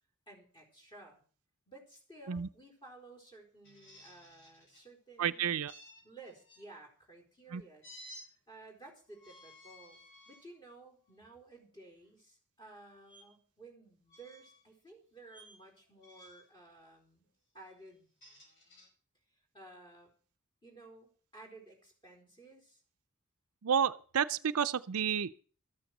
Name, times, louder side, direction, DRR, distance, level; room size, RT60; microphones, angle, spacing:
voice 1, 0.3-1.2 1.7-5.5 6.0-10.0 10.3-17.3 17.5-18.1 19.5-20.1 20.6-22.8, right 2 dB, 20° left, 4.5 m, -55 dB
sound 1, 3.6-4.8 5.7-6.6 7.8-8.3 9.1-10.4 11.1-11.3 13.1-13.2 14.1-14.6 15.3-15.6 16.0-16.5 17.9-18.9, equal, 55° left, 5.5 m, -55 dB
voice 2, 5.2-5.7 7.5-7.6 23.6-25.4, right 7 dB, 70° right, 0.5 m, -31 dB
13.5 x 8.9 x 6.6 m
head